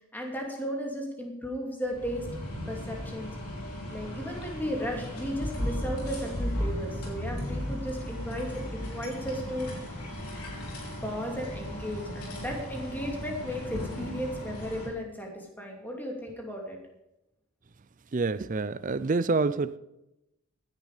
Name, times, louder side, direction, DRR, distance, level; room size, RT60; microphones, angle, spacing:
voice 1, 0.1-2.3 2.7-3.3 3.9-9.7 11.0-16.8, equal, 10° left, 2.7 m, -35 dB
sound 1, 1.8-14.9, left 1 dB, 85° left, 4.1 m, -36 dB
voice 2, 18.1-19.8, right 3 dB, 35° right, 0.5 m, -27 dB
15.5 x 10.5 x 5.0 m
head